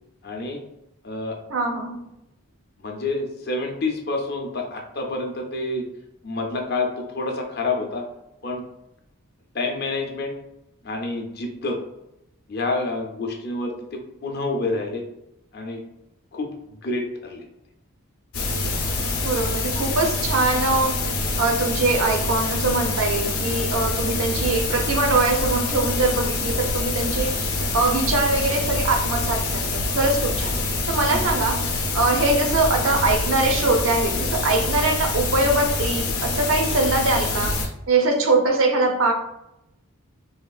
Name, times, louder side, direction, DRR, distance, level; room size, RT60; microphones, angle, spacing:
voice 1, 0.2-0.6 1.0-1.4 2.8-5.9 6.2-8.0 8.4-8.6 9.5-10.4 10.8-11.8 12.5-15.0 15.5-15.8 16.3-17.5 31.1-31.2, left 2 dB, 45° left, 2 dB, 0.5 m, -28 dB
voice 2, 1.5-2.0 19.2-30.5 30.9-39.1, right 2 dB, 70° right, 3 dB, 0.6 m, -22 dB
sound 1, 18.3-37.7, left 2 dB, 85° left, 0.6 m, -25 dB
3.4 x 2.3 x 2.3 m, 0.87 s
head